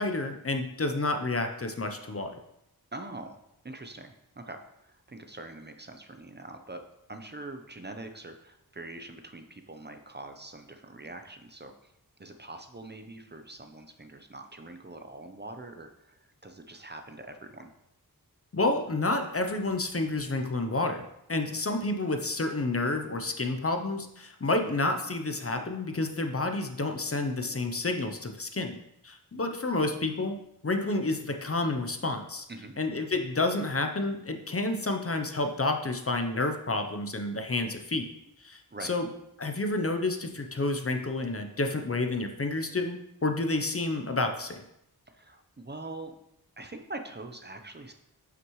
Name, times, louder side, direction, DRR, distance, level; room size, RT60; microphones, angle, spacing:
voice 1, 0.0-2.4 18.5-28.8 29.0-30.4 30.6-32.5 32.8-38.1 38.4-39.1 39.4-44.6, left 2 dB, 35° left, 5 dB, 0.7 m, -30 dB
voice 2, 2.9-3.4 3.6-6.8 7.1-11.9 12.2-17.7 32.5-32.7 38.7-39.0 45.1-46.1 46.6-47.9, right 2 dB, 25° right, 6 dB, 0.7 m, -43 dB
9.1 x 5.9 x 3.2 m, 0.81 s
wide cardioid pair, 70°, 38 cm